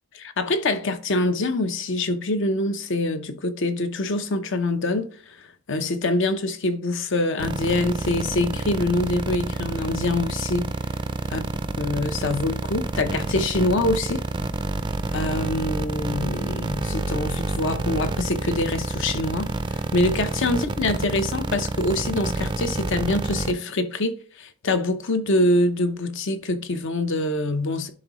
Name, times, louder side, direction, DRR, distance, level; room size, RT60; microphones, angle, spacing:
voice 1, 0.2-5.4 5.7-10.7 11.3-11.4 11.8-14.3 15.1-27.9, left 2 dB, 60° left, 0.7 m, -25 dB
sound 1, 7.4-23.5, right 2 dB, 20° right, 0.4 m, -27 dB
10.5 x 3.7 x 3.0 m
head